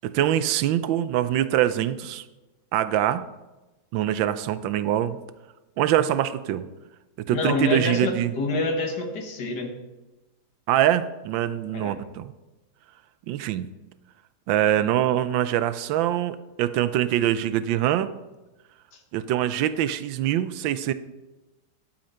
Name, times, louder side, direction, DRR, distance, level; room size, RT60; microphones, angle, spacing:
voice 1, 0.0-2.2 2.7-3.2 3.9-5.2 5.8-6.6 7.3-8.3 10.7-12.3 13.3-13.7 14.5-18.1 19.1-20.9, right 12 dB, 80° right, 14 dB, 1.3 m, -24 dB
voice 2, 7.3-9.7 11.7-12.0 18.9-19.0, left 3 dB, 60° left, 4 dB, 1.9 m, -27 dB
11.5 x 8.7 x 4.3 m, 1.1 s
omnidirectional pair, 2.1 m